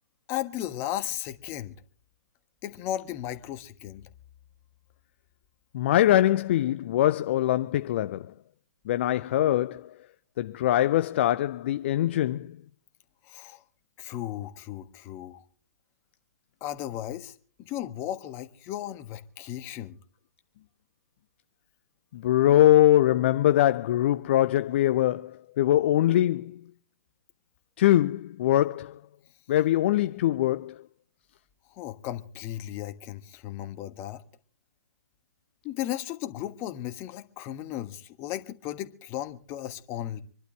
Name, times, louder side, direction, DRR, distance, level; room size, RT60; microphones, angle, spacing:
voice 1, 0.3-1.7 2.6-4.0 13.2-13.6 14.0-15.4 16.6-20.0 31.7-34.2 35.6-40.2, left 12 dB, 25° left, 1.4 m, -35 dB
voice 2, 5.7-8.3 8.9-9.9 10.4-12.6 22.1-26.6 27.8-29.0 29.5-30.8, left 13 dB, 40° left, 0.6 m, -23 dB
26.5 x 12.0 x 3.3 m
figure-of-eight pair, 120°, 9 cm